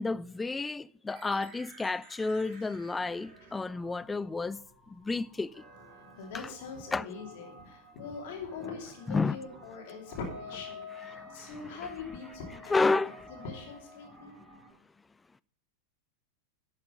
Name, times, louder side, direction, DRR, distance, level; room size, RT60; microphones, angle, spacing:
voice 1, 0.0-4.6 5.0-5.5 6.3-6.5 6.9-7.1 9.1-9.4 12.7-13.2, left 3 dB, 10° left, 0.3 m, -30 dB
sound 1, 1.1-14.7, right 3 dB, 30° right, 3.8 m, -55 dB
voice 2, 6.2-14.3, left 5 dB, 50° left, 2.9 m, -42 dB
Wind instrument woodwind instrument, 10.3-13.9, left 4 dB, 50° right, 2.8 m, -48 dB
12.0 x 6.6 x 5.4 m
figure-of-eight pair, 90°, 0 cm